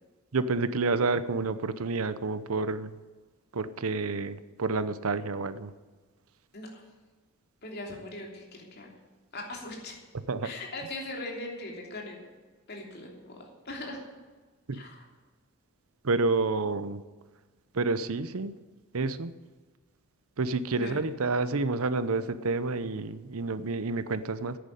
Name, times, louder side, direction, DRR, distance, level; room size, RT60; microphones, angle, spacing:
voice 1, 0.3-2.9 3.5-5.7 10.3-10.5 14.7-14.8 16.0-17.0 17.7-18.5 18.9-19.3 20.4-24.6, right 3 dB, 75° right, 14 dB, 0.7 m, -29 dB
voice 2, 7.6-8.9 9.3-9.9 10.4-12.3 12.7-13.4 13.6-14.0 14.7-15.1 20.7-21.0, left 2 dB, 45° left, 0 dB, 3.1 m, -40 dB
10.5 x 9.5 x 9.1 m, 1.3 s
head